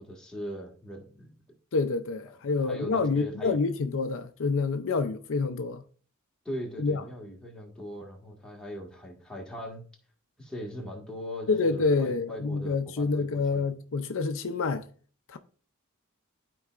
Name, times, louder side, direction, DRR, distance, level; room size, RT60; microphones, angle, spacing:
voice 1, 0.0-1.3 2.6-3.6 6.4-9.8 10.4-13.6, equal, 5° left, 1.8 m, -40 dB
voice 2, 1.7-5.8 6.8-7.0 11.5-14.8 15.3-15.4, left 4 dB, 65° left, 0.5 m, -27 dB
12.5 x 4.5 x 2.5 m
head